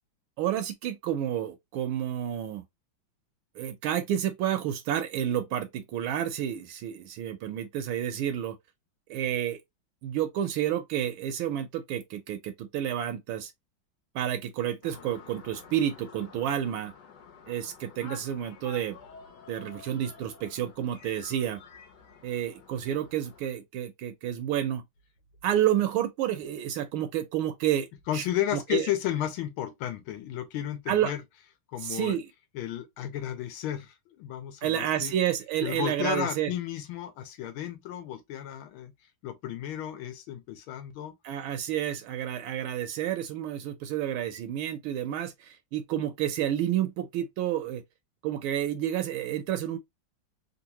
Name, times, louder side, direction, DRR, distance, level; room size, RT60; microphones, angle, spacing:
voice 1, 0.4-2.6 3.5-8.6 9.1-9.6 10.0-13.5 14.1-16.9 17.5-19.0 19.5-21.6 22.2-24.8 25.4-27.9 28.1-28.2 28.5-28.9 30.9-31.1 31.8-32.3 34.6-36.5 41.2-47.8 48.2-49.8, right 11 dB, 80° right, 1.4 m, -30 dB
sound 1, 14.8-23.4, left 6 dB, 60° left, 1.4 m, -50 dB
voice 2, 28.1-31.2 31.7-32.2 32.5-35.1 35.6-38.9 39.2-41.1, left 11 dB, 80° left, 1.6 m, -33 dB
3.7 x 2.4 x 2.8 m
omnidirectional pair, 2.3 m